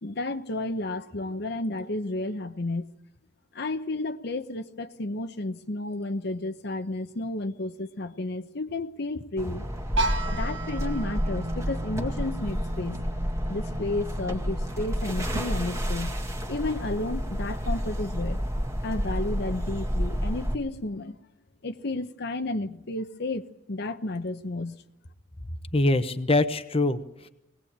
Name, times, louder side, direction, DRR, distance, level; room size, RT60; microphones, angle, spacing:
voice 1, 0.0-2.9 3.5-9.6 10.3-13.0 13.5-16.2 16.5-18.4 18.8-21.2 21.6-24.7, left 2 dB, 60° left, 8 dB, 1.0 m, -32 dB
sound 1, 9.4-20.5, equal, 15° right, 2.0 m, -30 dB
sound 2, 10.0-15.8, right 2 dB, 85° right, 2.4 m, -35 dB
voice 2, 25.7-27.3, left 2 dB, 30° left, 9 dB, 1.0 m, -24 dB
21.0 x 18.0 x 8.7 m, 0.85 s
head